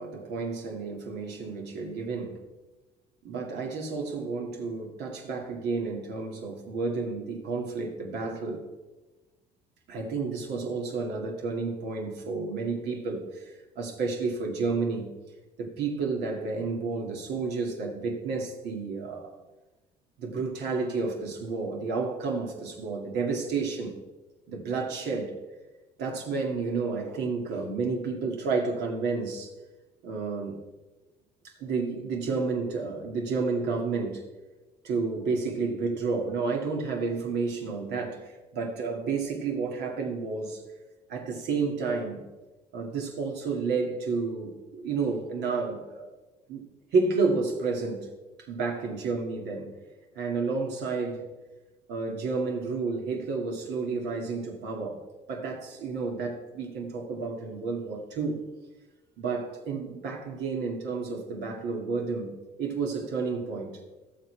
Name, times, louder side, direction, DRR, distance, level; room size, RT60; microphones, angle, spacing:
voice 1, 0.0-2.4 3.2-8.6 9.9-13.4 13.8-15.1 15.6-19.4 20.2-24.0 24.5-25.3 26.0-29.5 30.0-30.6 31.6-34.2 34.8-40.6 41.1-42.2 42.7-46.1 46.5-46.7 46.9-48.1 48.5-49.7 50.1-51.3 51.9-55.0 55.3-58.4 59.2-62.3 62.6-63.7, right 4 dB, 80° right, 1 dB, 2.0 m, -31 dB
17.5 x 6.8 x 3.3 m, 1.2 s
cardioid pair, 110°, 17 cm